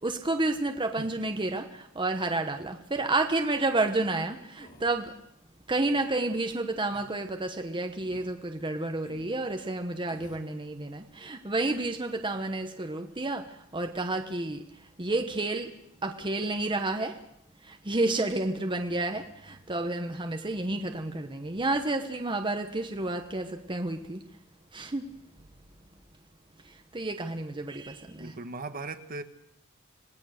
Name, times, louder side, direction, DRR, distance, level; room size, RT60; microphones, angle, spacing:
voice 1, 0.0-5.1 5.7-14.6 15.0-15.7 16.0-17.2 17.6-24.2 24.7-25.0 26.6-28.3, right 2 dB, 20° right, 5 dB, 1.1 m, -30 dB
sound 1, 4.5-4.9 5.7-6.0 6.8-7.1 8.0-8.3 9.0-9.3 10.1-10.5, left 1 dB, 35° left, 3.8 m, -52 dB
voice 2, 28.2-29.2, right 3 dB, 40° right, 8 dB, 1.4 m, -38 dB
26.5 x 19.0 x 6.5 m, 0.77 s
head